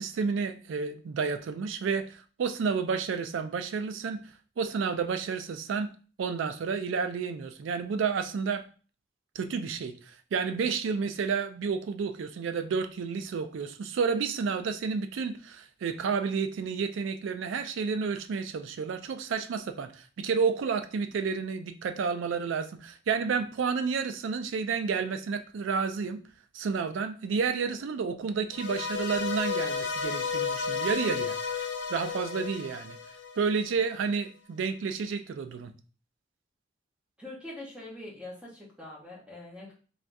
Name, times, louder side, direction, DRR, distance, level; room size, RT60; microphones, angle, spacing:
voice 1, 0.0-4.2 4.6-5.9 6.2-8.6 9.4-26.2 26.5-31.4 31.9-33.0 33.4-35.7, right 5 dB, 80° right, 9 dB, 0.3 m, -30 dB
sound 1, 28.5-33.8, left 5 dB, 70° left, 0.5 m, -33 dB
voice 2, 37.2-39.7, left 1 dB, 5° right, -4 dB, 0.8 m, -43 dB
3.4 x 2.3 x 2.6 m, 0.38 s
head